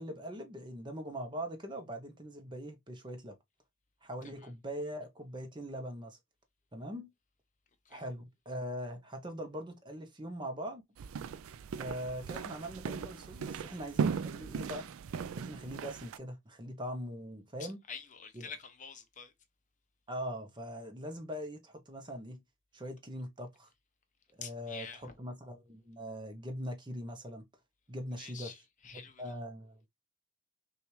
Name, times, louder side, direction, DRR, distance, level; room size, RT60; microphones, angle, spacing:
voice 1, 0.0-3.4 4.0-6.2 6.7-7.1 7.9-10.8 11.7-14.9 15.4-17.8 18.3-18.5 20.1-22.4 22.7-23.7 24.4-27.5 27.9-28.6 28.9-29.9, equal, 20° right, 0.7 m, -41 dB
sound 1, 11.0-16.2, right 6 dB, 70° right, 0.3 m, -37 dB
voice 2, 17.6-19.3 24.4-25.1 28.2-29.2, left 6 dB, 35° left, 0.7 m, -47 dB
5.9 x 2.4 x 3.1 m
head